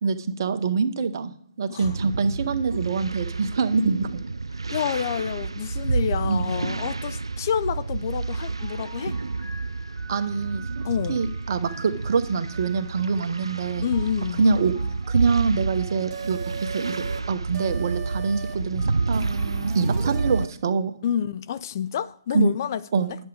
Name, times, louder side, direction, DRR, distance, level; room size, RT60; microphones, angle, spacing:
voice 1, 0.0-1.3 1.6-4.1 6.3-6.5 10.1-10.8 11.1-13.9 14.4-14.7 15.1-19.3 19.7-20.9 22.3-22.5 22.9-23.1, right 5 dB, 50° right, 0.9 m, -25 dB
sound 1, 1.8-20.5, right 3 dB, 80° right, 0.3 m, -29 dB
voice 2, 4.7-9.2 10.8-11.2 13.8-14.5 21.0-23.2, left 8 dB, 40° left, 0.4 m, -28 dB
sound 2, 8.1-20.2, right 1 dB, 5° left, 1.5 m, -49 dB
sound 3, 16.1-17.2 17.5-18.6 19.1-20.5, right 6 dB, 25° right, 1.1 m, -36 dB
10.5 x 7.1 x 4.9 m
figure-of-eight pair, 130°, 3 cm